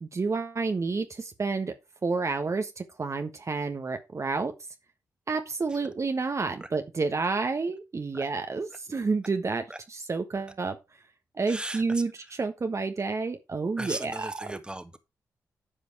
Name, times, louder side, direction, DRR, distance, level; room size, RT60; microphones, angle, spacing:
voice 1, 0.0-1.7 2.0-4.5 5.3-9.6 9.9-10.8 11.3-14.1 14.4-14.6, right 4 dB, 45° right, 1.3 m, -29 dB
voice 2, 11.5-12.0 13.8-15.0, right 1 dB, 15° right, 1.6 m, -37 dB
10.0 x 5.1 x 4.8 m
supercardioid pair, 40°, 7 cm